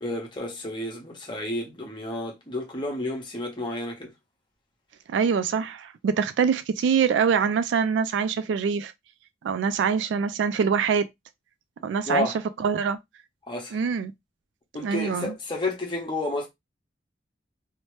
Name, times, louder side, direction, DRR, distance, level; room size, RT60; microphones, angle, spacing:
voice 1, 0.0-4.1 12.1-12.4 13.5-13.8 14.7-16.5, left 1 dB, 25° left, 0.9 m, -31 dB
voice 2, 5.1-8.9 9.4-11.1 11.8-12.3 12.6-13.0 13.7-14.1 14.8-15.3, right 6 dB, 80° right, 0.3 m, -24 dB
2.8 x 2.0 x 3.1 m
head